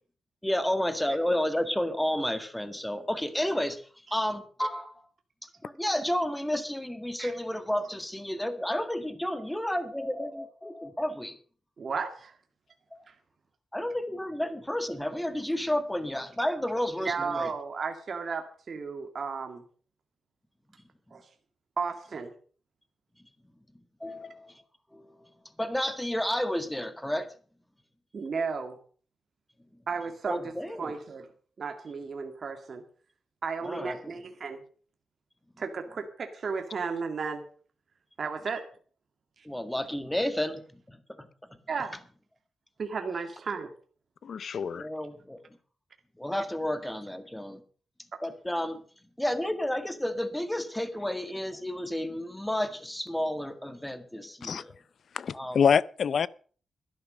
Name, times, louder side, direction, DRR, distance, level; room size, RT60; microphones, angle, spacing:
voice 1, 0.4-3.8 4.1-4.9 5.6-11.4 12.9-13.0 13.7-17.5 24.0-24.5 24.9-25.0 25.6-27.3 30.3-30.9 33.6-34.2 39.5-40.6 40.9-41.3 44.8-45.4 46.2-47.6 48.2-48.8 49.2-54.7 55.3-55.6, left 1 dB, 5° left, 1.7 m, -31 dB
voice 2, 11.8-12.3 17.0-19.6 21.1-21.2 21.8-22.3 28.1-28.8 29.9-30.5 30.8-31.3 31.6-32.8 33.4-34.6 35.6-37.4 38.2-38.6 39.4-39.5 41.7-41.9 42.8-43.7 48.1-48.2, right 5 dB, 50° right, 1.9 m, -34 dB
voice 3, 44.2-44.9 54.4-54.6 55.1-56.3, left 7 dB, 60° left, 0.5 m, -26 dB
12.5 x 11.0 x 6.4 m
cardioid pair, 105°, 0 cm